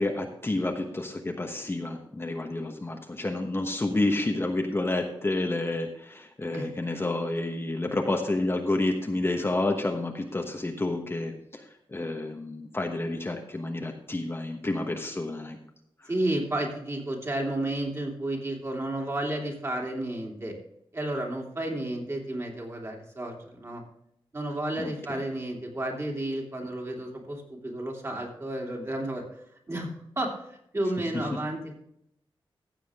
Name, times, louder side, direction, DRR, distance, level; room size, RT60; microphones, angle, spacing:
voice 1, 0.0-15.6 24.8-25.2, left 2 dB, 25° left, 3 dB, 1.1 m, -29 dB
voice 2, 16.1-20.5 20.9-23.8 24.3-31.8, right 1 dB, 30° right, 0 dB, 2.7 m, -32 dB
15.0 x 7.3 x 3.6 m, 0.76 s
wide cardioid pair, 120°, 9 cm